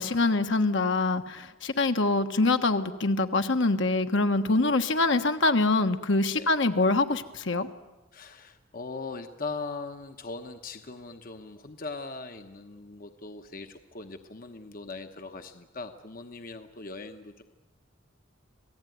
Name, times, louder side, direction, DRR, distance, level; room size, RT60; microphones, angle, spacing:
voice 1, 0.0-7.7, left 2 dB, 60° left, 7 dB, 1.3 m, -24 dB
voice 2, 8.1-17.4, left 3 dB, 45° left, 7 dB, 1.1 m, -40 dB
26.5 x 18.0 x 9.3 m, 1.1 s
head